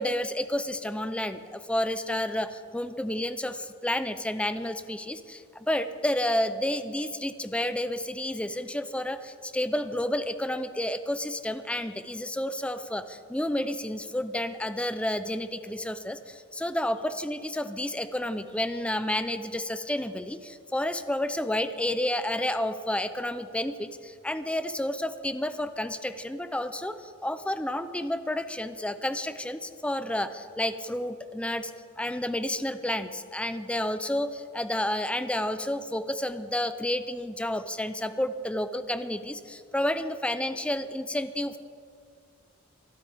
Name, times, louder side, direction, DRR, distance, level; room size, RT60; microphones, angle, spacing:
voice 1, 0.0-31.7 32.0-41.6, left 1 dB, 5° left, 11 dB, 0.5 m, -30 dB
25.0 x 12.0 x 3.5 m, 2.1 s
head